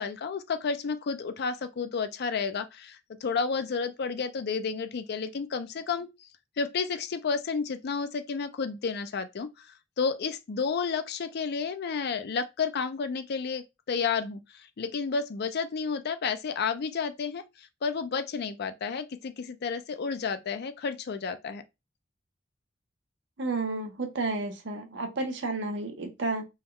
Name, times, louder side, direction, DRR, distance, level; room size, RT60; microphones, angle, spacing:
voice 1, 0.0-6.3 6.6-9.7 10.0-21.6, left 5 dB, 55° left, 0.4 m, -31 dB
voice 2, 23.4-26.5, right 3 dB, 65° right, 0.8 m, -31 dB
3.5 x 2.2 x 3.1 m
head